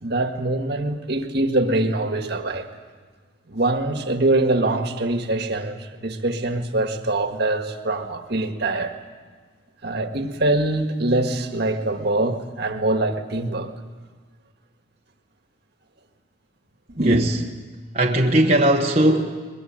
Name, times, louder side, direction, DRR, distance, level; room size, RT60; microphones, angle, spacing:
voice 1, 0.0-2.7 3.5-9.0 9.8-13.7 17.0-17.3, right 2 dB, 55° right, 1.7 m, -23 dB
voice 2, 17.0-17.3 17.9-19.5, right 1 dB, 35° right, 1.2 m, -19 dB
22.5 x 22.0 x 8.9 m
head